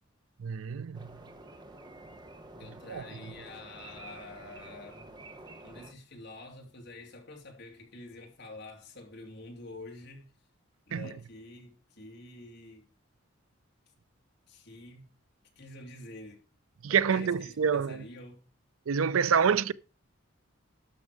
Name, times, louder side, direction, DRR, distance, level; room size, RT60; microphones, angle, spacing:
voice 1, 0.4-1.1 2.9-3.0 10.9-11.1 16.8-18.0 18.9-19.7, right 7 dB, 85° right, 0.5 m, -27 dB
sound 1, 0.9-5.9, right 2 dB, 20° right, 1.0 m, -49 dB
voice 2, 2.6-5.1 5.6-10.3 10.9-12.9 14.5-15.1 15.6-16.4 16.8-18.4 19.2-19.7, left 2 dB, 55° left, 2.6 m, -47 dB
12.0 x 6.2 x 4.8 m
head